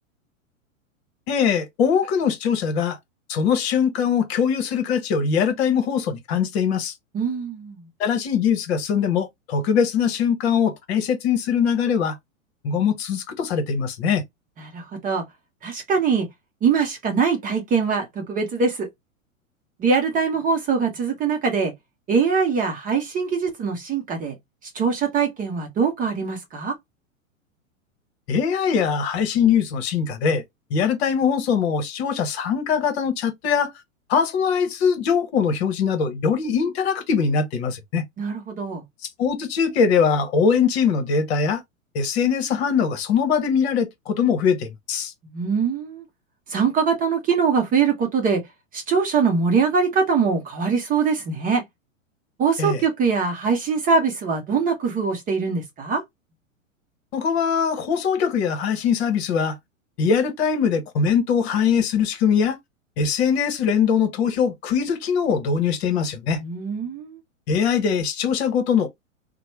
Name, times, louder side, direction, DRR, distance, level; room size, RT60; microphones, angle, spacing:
voice 1, 1.3-3.0 3.3-6.9 8.0-12.2 12.6-14.2 28.3-30.4 30.7-33.7 34.1-38.1 39.2-41.6 41.9-45.1 52.6-52.8 57.1-59.6 60.0-62.6 63.0-66.4 67.5-68.9, left 6 dB, 50° left, 1.0 m, -22 dB
voice 2, 7.1-7.8 14.6-15.2 15.6-16.3 16.6-18.9 19.8-21.7 22.1-24.3 24.6-26.7 38.2-38.8 45.3-46.0 46.5-48.4 48.7-51.6 52.4-56.0 66.4-67.2, right 5 dB, 20° right, 0.7 m, -22 dB
3.0 x 2.1 x 2.9 m
figure-of-eight pair, 100°, 40 cm